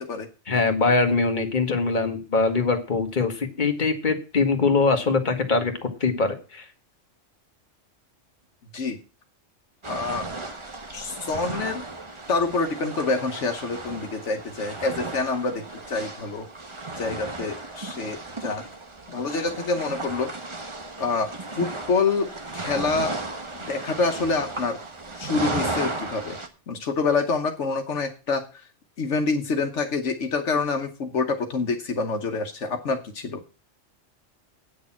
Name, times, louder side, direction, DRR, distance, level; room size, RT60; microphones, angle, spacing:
voice 1, 0.5-6.6, left 4 dB, 40° left, 5 dB, 1.6 m, -23 dB
sound 1, 9.8-26.5, right 3 dB, 25° right, 1.1 m, -35 dB
voice 2, 9.9-10.3 10.9-11.8 12.3-16.5 17.0-18.6 19.1-20.3 21.0-21.3 21.6-23.1 23.5-24.8 25.2-26.4 26.7-28.6 29.0-33.4, left 4 dB, 75° left, 5 dB, 1.3 m, -27 dB
8.8 x 6.6 x 7.3 m, 0.34 s
omnidirectional pair, 1.2 m